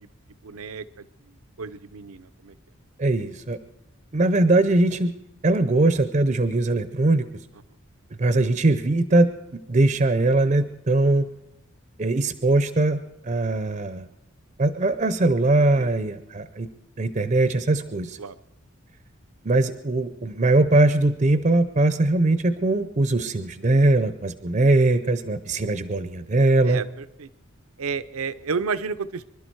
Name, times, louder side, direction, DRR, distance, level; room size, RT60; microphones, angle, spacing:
voice 1, 0.4-0.9 1.2-1.3 1.6-2.6 15.8-15.9 18.2-18.4 26.7-27.3 27.8-29.3, right 5 dB, 85° right, 14 dB, 0.6 m, -31 dB
voice 2, 3.0-3.6 4.1-5.1 5.4-7.3 8.2-11.3 12.0-14.1 14.6-16.7 17.0-18.2 19.4-26.8, right 2 dB, 35° right, 11 dB, 0.5 m, -21 dB
25.0 x 12.0 x 4.6 m, 0.85 s
head